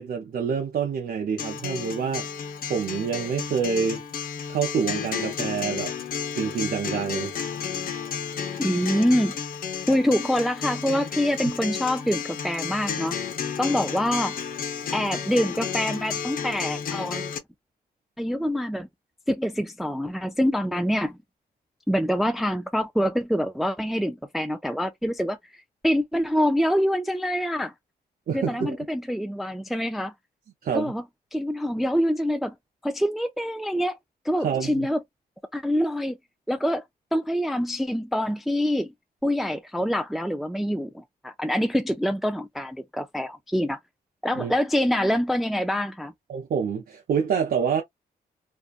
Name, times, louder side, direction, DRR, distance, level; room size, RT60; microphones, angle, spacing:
voice 1, 0.0-2.3 2.7-4.0 4.5-5.9 6.3-7.4 28.3-28.8 30.6-30.9 34.4-34.9 44.4-44.5 46.3-47.8, right 6 dB, 60° right, 0.6 m, -27 dB
Acoustic guitar, 1.4-17.4, left 7 dB, 60° left, 0.7 m, -32 dB
voice 2, 8.6-9.4 9.9-13.2 13.6-14.4 14.9-17.2 18.2-18.9 19.3-21.2 21.9-25.4 25.8-27.7 28.3-30.1 30.7-31.0 31.3-32.5 32.8-34.0 34.2-35.0 35.5-36.2 36.5-36.8 37.1-38.9 39.2-43.8 44.2-46.1, equal, ahead, 0.4 m, -25 dB
2.5 x 2.2 x 2.4 m
cardioid pair, 65°, 17 cm